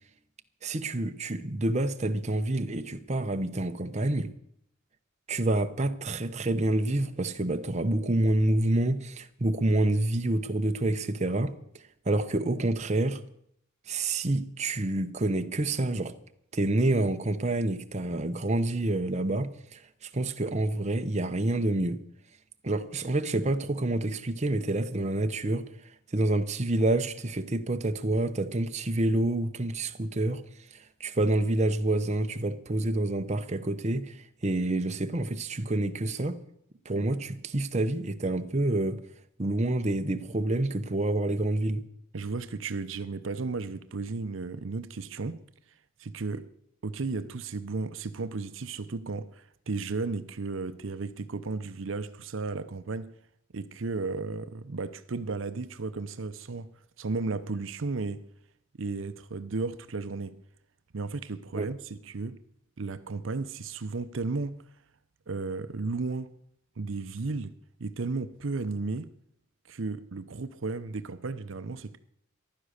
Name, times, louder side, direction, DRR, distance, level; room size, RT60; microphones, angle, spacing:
voice 1, 0.6-4.3 5.3-11.5 12.1-13.2 13.9-16.1 16.5-22.0 22.6-25.7 26.1-30.4 30.7-36.4 36.8-39.0 39.4-41.8 61.5-61.7, right 2 dB, 35° right, 0.8 m, -28 dB
voice 2, 42.1-45.4 46.0-46.5 46.8-53.1 53.5-56.7 57.0-58.3 58.8-60.4 60.9-62.4 62.8-64.6 65.3-66.3 66.8-67.5 67.8-69.1 69.7-72.0, right 3 dB, 65° right, 0.7 m, -34 dB
15.0 x 11.5 x 6.5 m
head